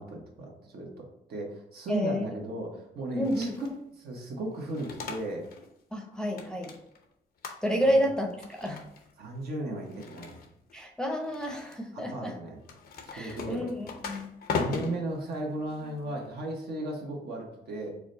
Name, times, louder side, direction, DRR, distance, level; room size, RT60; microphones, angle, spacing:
voice 1, 0.0-3.5 4.0-5.5 7.8-8.1 9.2-10.4 11.9-12.6 13.0-13.7 14.6-17.9, right 2 dB, 70° right, 0 dB, 1.1 m, -36 dB
voice 2, 1.9-2.3 3.1-3.6 5.9-6.7 7.6-8.8 10.7-12.3 13.1-14.3, equal, 5° left, 2 dB, 0.7 m, -30 dB
sound 1, 3.2-3.8 4.5-5.7 6.0-7.0 7.4-7.9 8.3-9.1 9.8-10.7 11.2-11.8 12.6-16.3, left 5 dB, 65° left, 0.6 m, -38 dB
4.8 x 2.2 x 3.8 m, 0.78 s
cardioid pair, 100°, 17 cm